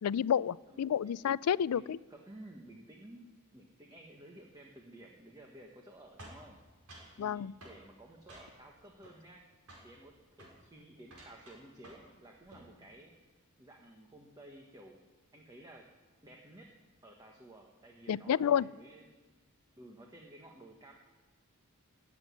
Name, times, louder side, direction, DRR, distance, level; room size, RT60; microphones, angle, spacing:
voice 1, 0.0-2.0 7.2-7.5 18.1-18.7, left 8 dB, 80° left, 20 dB, 0.4 m, -30 dB
voice 2, 0.7-1.1 1.7-3.3 3.5-6.6 7.2-9.4 9.8-13.1 13.6-15.0 15.3-15.9 16.2-16.7 17.0-19.3 19.8-20.9, right 1 dB, 15° right, 1 dB, 1.3 m, -54 dB
sound 1, 6.2-7.2 7.6-7.8 8.3-8.7 9.0-9.4 9.7-9.9 10.3-10.6 11.0-12.1 12.4-12.7, right 1 dB, 75° right, 5.3 m, -53 dB
15.0 x 8.3 x 9.4 m, 1.3 s
head